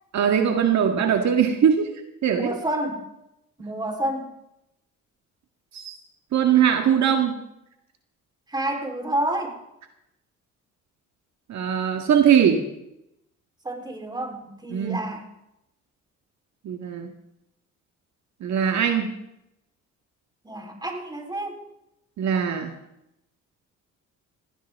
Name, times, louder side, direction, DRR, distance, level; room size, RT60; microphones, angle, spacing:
voice 1, 0.1-1.9 2.2-2.5 5.7-5.9 6.3-7.4 11.5-12.7 14.7-15.0 16.6-17.1 18.4-19.1 22.2-22.7, right 8 dB, 65° right, 4 dB, 1.9 m, -21 dB
voice 2, 2.3-3.0 3.6-4.3 8.5-9.6 13.6-15.3 20.4-21.7, right 1 dB, 15° right, 2 dB, 4.0 m, -29 dB
19.0 x 16.5 x 3.7 m, 0.83 s
cardioid pair, 90°, 30 cm